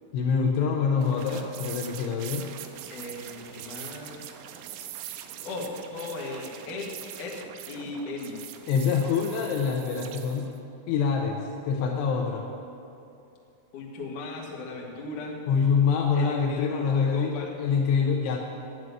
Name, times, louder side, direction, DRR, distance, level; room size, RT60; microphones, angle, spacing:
voice 1, 0.1-2.5 8.7-10.5 10.9-11.4 11.7-12.5 15.5-18.4, left 6 dB, 85° left, 1 dB, 2.5 m, -25 dB
sound 1, 1.0-10.6, right 11 dB, 85° right, 3.1 m, -43 dB
voice 2, 2.9-4.3 5.4-6.9 7.2-7.4 7.7-8.4 13.7-15.4 16.1-17.6, left 3 dB, 55° left, -3 dB, 2.5 m, -37 dB
11.0 x 7.7 x 9.6 m, 2.7 s
omnidirectional pair, 5.8 m